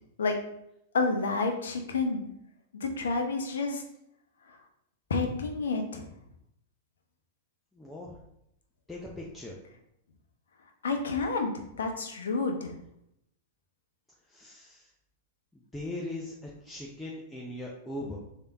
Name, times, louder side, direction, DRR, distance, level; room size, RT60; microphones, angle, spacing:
voice 1, 0.9-2.3 2.7-3.8 4.5-4.6 5.1-6.0 10.8-12.7, left 3 dB, 80° left, 4 dB, 0.7 m, -29 dB
voice 2, 7.7-8.2 8.9-9.6 14.3-14.9 15.5-18.2, left 1 dB, 5° left, -4 dB, 0.6 m, -40 dB
3.4 x 2.8 x 3.4 m, 0.78 s
hypercardioid pair, 105°, 0 cm